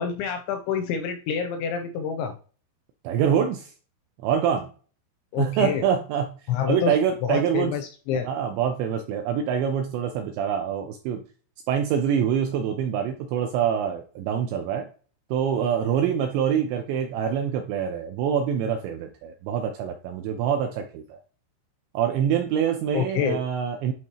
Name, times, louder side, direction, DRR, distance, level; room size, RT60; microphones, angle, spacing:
voice 1, 0.0-2.4 5.3-5.9 6.5-7.0 7.2-8.3 22.9-23.4, left 7 dB, 85° left, 6 dB, 2.7 m, -27 dB
voice 2, 3.0-3.7 4.2-4.7 5.4-6.3 6.7-7.7 8.3-11.2 11.7-14.9 15.3-21.2 21.9-23.9, right 8 dB, 80° right, 5 dB, 2.6 m, -25 dB
11.0 x 3.9 x 2.9 m, 0.39 s
omnidirectional pair, 5.8 m